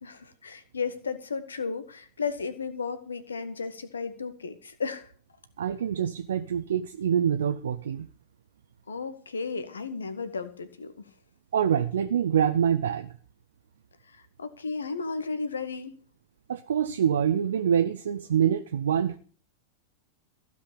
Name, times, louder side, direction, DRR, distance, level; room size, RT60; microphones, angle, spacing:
voice 1, 0.0-5.1 8.9-11.0 14.1-16.0, left 5 dB, 70° left, 1.5 m, -34 dB
voice 2, 5.6-8.1 11.5-13.1 16.5-19.2, right 8 dB, 65° right, 0.7 m, -25 dB
15.5 x 5.7 x 8.7 m
figure-of-eight pair, 90°, 0 cm